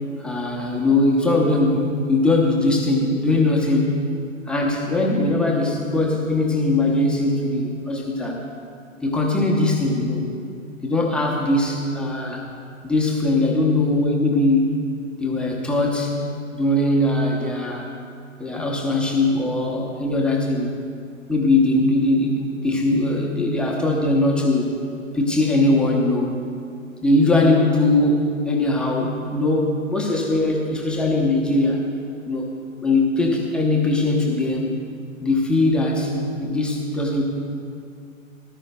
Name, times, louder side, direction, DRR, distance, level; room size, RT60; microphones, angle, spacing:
voice 1, 0.2-4.0 4.5-8.4 9.0-10.3 10.8-12.4 12.8-14.8 15.2-16.2 16.5-17.9 18.4-20.8 21.3-24.7 25.1-26.4 27.0-31.8 32.3-32.5 32.8-34.7 35.2-37.2, left 2 dB, ahead, -2 dB, 0.7 m, -20 dB
18.0 x 11.0 x 2.2 m, 2.3 s
figure-of-eight pair, 130°, 40 cm